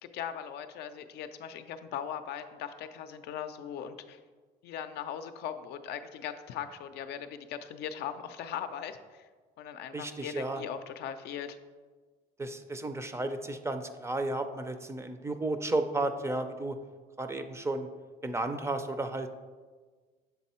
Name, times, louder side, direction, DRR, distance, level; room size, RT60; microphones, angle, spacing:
voice 1, 0.0-4.2 4.6-9.3 9.6-11.6, left 9 dB, 75° left, 9 dB, 0.5 m, -39 dB
voice 2, 9.9-10.6 12.4-16.8 17.2-17.9 18.2-19.3, right 2 dB, 15° right, 8 dB, 0.4 m, -33 dB
7.1 x 3.6 x 4.2 m, 1.4 s
cardioid pair, 110°, 17 cm